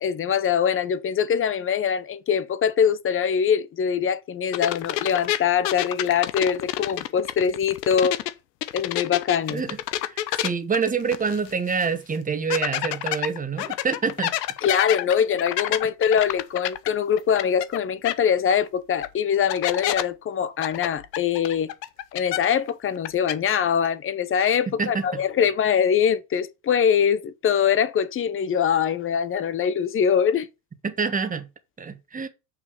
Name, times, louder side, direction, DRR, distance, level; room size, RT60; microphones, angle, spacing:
voice 1, 0.0-8.2 8.7-9.6 14.6-21.7 22.1-30.5, left 7 dB, 25° left, 0.9 m, -23 dB
sound 1, 4.5-8.3 8.6-11.5 11.8-11.9 12.5-17.8 18.0-18.1 19.0-19.1 19.5-20.0 20.6-22.7 23.0-23.3, left 14 dB, 85° left, 0.9 m, -28 dB
voice 2, 10.4-14.3 24.7-25.1 30.8-31.5 31.8-32.3, right 5 dB, 15° right, 1.4 m, -26 dB
6.8 x 5.6 x 6.7 m
supercardioid pair, 105°, 48 cm